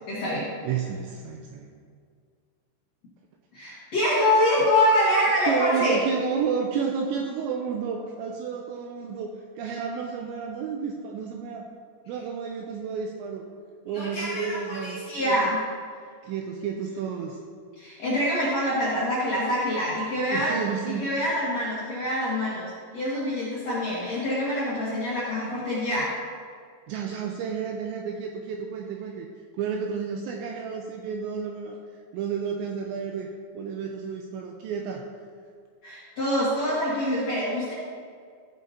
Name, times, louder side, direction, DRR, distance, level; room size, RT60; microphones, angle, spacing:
voice 1, 0.1-0.5 3.5-6.0 13.9-15.6 17.8-20.6 20.9-26.1 35.8-37.7, left 1 dB, 60° left, -9 dB, 1.8 m, -25 dB
voice 2, 0.6-1.7 5.5-11.7 12.1-13.5 13.9-15.5 16.2-17.4 20.3-21.1 26.9-29.3 29.5-33.3 33.6-35.0, right 6 dB, 85° right, 2 dB, 2.6 m, -31 dB
14.5 x 7.7 x 2.8 m, 2.1 s
omnidirectional pair, 5.6 m